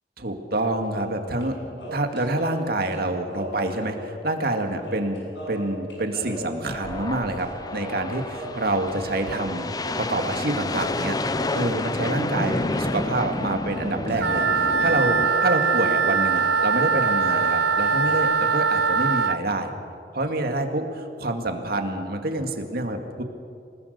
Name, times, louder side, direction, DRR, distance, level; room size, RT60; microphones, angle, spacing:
voice 1, 0.2-11.2 11.5-19.7 20.1-23.2, right 2 dB, 60° right, 5 dB, 2.2 m, -27 dB
sound 1, 0.9-1.5 1.8-4.2 4.4-4.5 4.8-10.4 10.7-11.9 12.1-13.4 13.7-16.1 16.4-16.5 16.7-18.2, equal, 80° left, 7.5 m, -38 dB
sound 2, 6.7-15.3, left 2 dB, 20° left, 0.7 m, -30 dB
Wind instrument woodwind instrument, 14.2-19.4, right 5 dB, 75° right, 0.8 m, -22 dB
28.0 x 19.0 x 6.8 m, 2.5 s
head